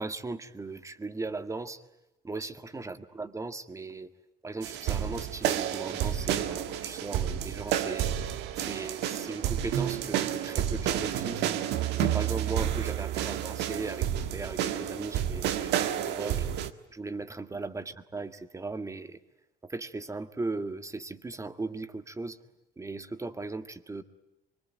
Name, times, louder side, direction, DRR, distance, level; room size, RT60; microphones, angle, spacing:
voice 1, 0.0-1.8 2.2-4.1 4.4-8.2 8.6-11.5 12.0-16.5 16.9-19.2 19.6-22.4 22.8-24.0, right 3 dB, 20° right, 9 dB, 1.8 m, -37 dB
sound 1, 4.6-16.7, right 10 dB, 85° right, 1.7 m, -30 dB
25.0 x 24.0 x 9.1 m, 0.91 s
cardioid pair, 110°, 17 cm